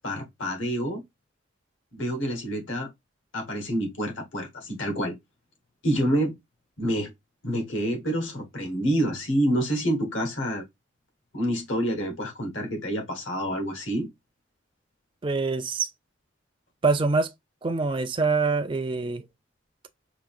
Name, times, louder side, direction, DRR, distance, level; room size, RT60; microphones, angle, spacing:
voice 1, 0.0-1.0 1.9-2.9 3.3-5.2 5.8-6.4 6.8-7.1 7.4-10.6 11.3-14.1, equal, 80° left, 1.6 m, -27 dB
voice 2, 15.2-15.9 16.8-17.3 17.6-19.2, right 4 dB, 25° right, 0.4 m, -25 dB
5.0 x 2.7 x 2.4 m
head